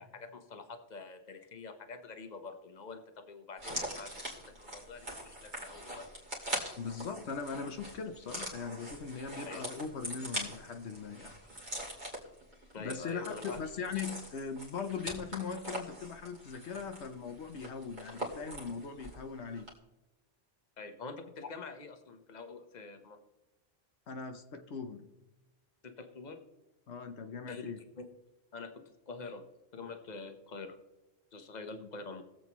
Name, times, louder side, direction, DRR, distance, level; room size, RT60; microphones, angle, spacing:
voice 1, 0.0-6.1 9.4-9.6 12.7-13.6 20.8-23.2 25.8-26.4 27.5-28.1 28.5-29.4 29.7-30.8 31.3-32.2, left 4 dB, 40° left, 6 dB, 1.2 m, -46 dB
sound 1, 3.6-19.3 19.5-19.7, equal, 45° right, 2.5 m, -43 dB
voice 2, 6.8-11.3 12.8-19.7 24.1-25.1 26.9-27.8 31.8-31.9, left 5 dB, 80° left, 7 dB, 1.1 m, -40 dB
20.5 x 7.7 x 3.0 m, 1.0 s
omnidirectional pair, 1.1 m